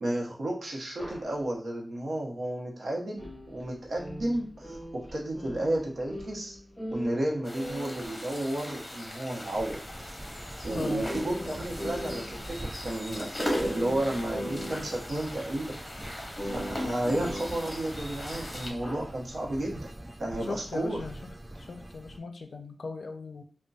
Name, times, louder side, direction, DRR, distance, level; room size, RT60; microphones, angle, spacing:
voice 1, 0.0-6.6 6.9-9.8 10.6-15.8 16.2-19.9 20.2-21.0, right 1 dB, 80° right, -2 dB, 0.8 m, -32 dB
sound 1, 1.0-1.3 3.2-7.3 7.5-9.1 10.0-10.1 10.6-10.7 11.0-12.5 12.8-12.9 13.1-13.2 13.5-15.2 16.4-18.1 18.7-19.1, equal, 10° left, 1.3 m, -39 dB
sound 2, 7.4-18.7, left 1 dB, 25° left, 0.8 m, -39 dB
sound 3, 9.5-22.2, right 1 dB, 25° right, 0.3 m, -44 dB
voice 2, 10.7-11.1 20.5-23.4, left 4 dB, 80° left, 6 dB, 0.4 m, -38 dB
3.9 x 2.1 x 2.3 m, 0.41 s
wide cardioid pair, 80°, 0 cm